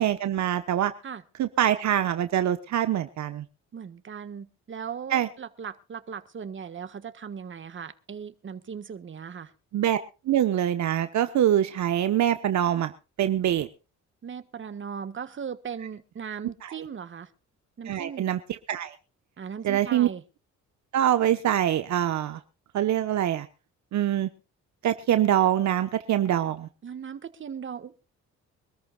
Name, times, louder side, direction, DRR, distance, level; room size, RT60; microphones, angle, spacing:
voice 1, 0.0-0.9 1.4-3.4 5.1-5.3 9.7-10.0 10.2-12.9 13.2-13.7 16.6-16.7 17.9-18.4 18.7-18.9 19.6-20.1 20.9-22.4 22.7-23.5 23.9-24.3 24.8-26.7, right 11 dB, 70° right, 9 dB, 1.2 m, -24 dB
voice 2, 3.7-9.5 14.2-17.3 17.8-18.3 19.4-20.2 26.8-28.0, right 7 dB, 40° right, 9 dB, 1.6 m, -38 dB
24.5 x 13.5 x 2.4 m, 0.32 s
cardioid pair, 90°, 30 cm